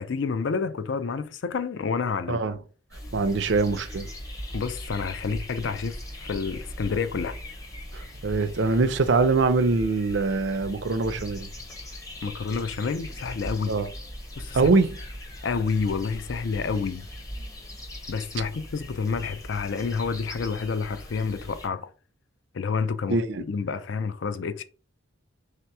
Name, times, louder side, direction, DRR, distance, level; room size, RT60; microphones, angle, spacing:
voice 1, 0.0-2.4 4.5-7.4 12.2-13.8 14.4-14.7 15.4-17.1 18.1-21.9 22.5-23.2 23.5-24.6, left 5 dB, 60° left, 0.4 m, -29 dB
sound 1, 2.9-21.7, equal, 15° left, 0.7 m, -39 dB
voice 2, 3.1-4.1 7.9-11.5 13.7-13.9 14.5-15.0 23.1-23.4, right 3 dB, 55° right, 0.5 m, -23 dB
3.3 x 2.8 x 4.6 m
head